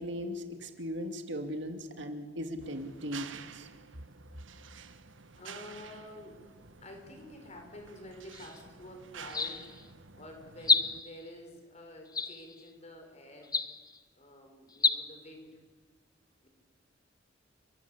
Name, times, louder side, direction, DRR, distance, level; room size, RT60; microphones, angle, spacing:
voice 1, 0.0-3.7, equal, 65° right, 7 dB, 2.5 m, -38 dB
sound 1, 2.6-11.0, right 6 dB, 80° right, 1.6 m, -50 dB
voice 2, 5.4-6.5 6.8-13.6 14.1-15.6 16.4-16.5, left 1 dB, 35° left, 3 dB, 6.3 m, -49 dB
sound 2, 8.3-8.6 9.2-9.9 10.6-11.2 12.1-12.7 13.4-14.0 14.7-15.0, left 5 dB, 20° left, 1.0 m, -29 dB
29.5 x 23.0 x 8.5 m, 1.4 s
head